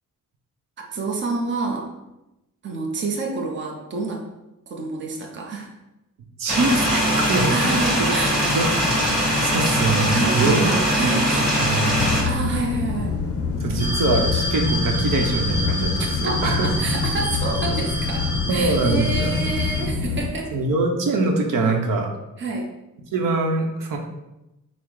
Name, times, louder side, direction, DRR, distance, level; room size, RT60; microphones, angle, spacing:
voice 1, 0.8-1.9 2.6-4.3 4.7-5.7 7.5-8.4 10.1-11.5 12.0-13.2 16.2-20.5 22.4-22.7, right 3 dB, 35° right, 1 dB, 0.7 m, -28 dB
voice 2, 6.4-8.1 8.5-8.7 9.1-10.6 10.9-11.1 11.5-12.0 13.6-17.0 18.5-19.4 20.5-22.1 23.1-24.0, right 3 dB, 85° right, 2 dB, 0.8 m, -24 dB
sound 1, 6.5-12.2, equal, ahead, 1.3 m, -21 dB
sound 2, 12.0-20.3, left 4 dB, 45° left, 0.5 m, -25 dB
sound 3, 13.8-19.8, left 1 dB, 15° right, 1.4 m, -30 dB
5.7 x 2.0 x 4.6 m, 0.93 s
wide cardioid pair, 170°, 32 cm